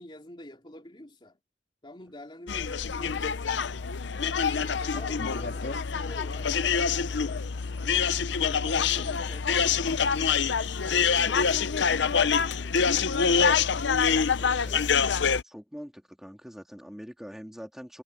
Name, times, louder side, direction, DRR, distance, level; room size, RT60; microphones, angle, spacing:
voice 1, 0.0-1.4 1.8-3.5 4.2-7.4 8.3-10.6 10.9-13.7 14.2-15.1, left 1 dB, 25° left, 3.3 m, -48 dB
sound 1, 2.5-15.4, left 6 dB, 80° left, 0.7 m, -26 dB
Acoustic guitar, 4.4-8.0, right 3 dB, 45° right, 3.1 m, -53 dB
sound 2, 5.2-15.0, left 1 dB, 60° left, 2.4 m, -47 dB
voice 2, 15.4-18.0, equal, ahead, 2.4 m, -43 dB
head